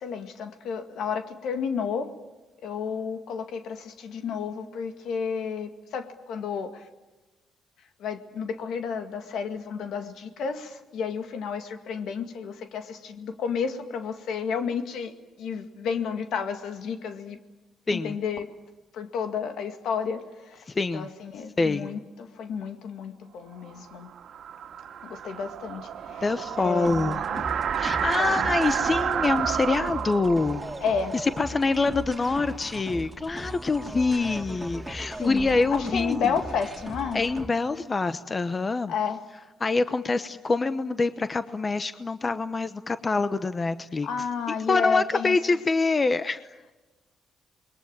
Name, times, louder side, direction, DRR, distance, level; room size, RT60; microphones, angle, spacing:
voice 1, 0.0-2.1 2.6-6.7 8.0-15.1 15.4-17.4 17.9-18.5 18.9-20.2 20.9-21.1 21.3-24.1 25.0-26.2 26.6-27.4 28.2-28.5 30.8-31.1 35.2-37.2 38.9-39.2 44.0-45.4, left 6 dB, 75° left, 7 dB, 2.0 m, -31 dB
voice 2, 20.7-21.1 21.6-21.9 26.2-27.2 27.8-30.6 31.1-36.3 37.1-38.9 39.6-44.3 44.7-46.4, left 3 dB, 30° left, 12 dB, 0.9 m, -25 dB
sound 1, 23.7-32.5, right 8 dB, 65° right, 1.9 m, -30 dB
sound 2, 26.8-37.5, right 1 dB, 10° right, 2.7 m, -39 dB
28.5 x 22.0 x 8.9 m, 1.1 s
cardioid pair, 90°, 0 cm